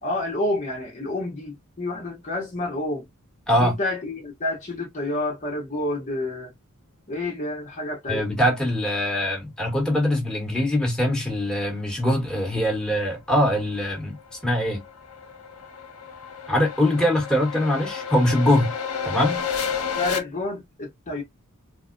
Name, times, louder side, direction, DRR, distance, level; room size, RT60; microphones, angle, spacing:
voice 1, 0.0-3.0 3.6-6.5 7.1-8.2 20.0-21.2, left 2 dB, 35° left, 0.9 m, -29 dB
voice 2, 8.1-14.1 14.4-14.8 16.5-18.7 19.0-19.5, left 1 dB, 5° left, 1.3 m, -22 dB
sound 1, 13.6-20.2, left 7 dB, 75° left, 0.8 m, -31 dB
4.0 x 2.1 x 2.5 m
head